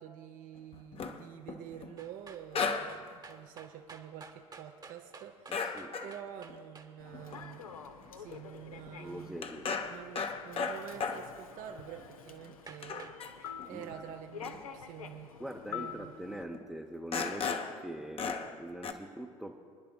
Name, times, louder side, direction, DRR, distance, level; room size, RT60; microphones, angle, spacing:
voice 1, 0.0-9.4 9.8-13.1 13.7-15.3 15.7-16.1, right 9 dB, 50° right, 6 dB, 0.7 m, -48 dB
sound 1, 0.7-1.9 2.5-3.0 3.3-3.4 5.5-6.2 6.5-6.6 7.1-7.4 8.0-8.1 8.3-8.6 8.9-11.4 12.0-12.1 12.5-12.6 12.8-13.7 14.4-14.6 15.5-15.6 16.5-16.6 17.1-17.8 18.2-18.6 18.8-18.9, left 5 dB, 30° left, 0.8 m, -36 dB
sound 2, 2.0-6.9 12.3-12.4 12.7-13.2 13.4-13.6, right 4 dB, 20° right, 1.0 m, -51 dB
voice 2, 5.5-6.0 8.7-9.7 13.7-14.0 15.4-19.5, right 1 dB, ahead, 0 dB, 0.7 m, -43 dB
Human voice / Subway metro underground, 7.0-16.4, left 7 dB, 85° left, 0.7 m, -48 dB
27.5 x 10.5 x 2.2 m, 2.1 s
hypercardioid pair, 70°, 18 cm